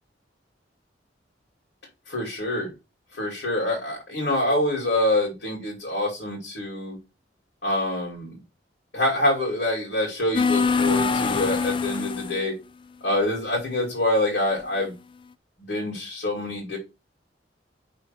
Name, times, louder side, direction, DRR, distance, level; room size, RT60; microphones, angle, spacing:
voice 1, 2.1-2.7 3.1-7.0 7.6-8.4 8.9-12.5 13.0-14.9 15.6-16.8, left 1 dB, 85° left, -3 dB, 2.7 m, -26 dB
sound 1, 10.3-12.4, left 4 dB, 30° left, 0.4 m, -23 dB
5.4 x 4.3 x 5.8 m, 0.27 s
head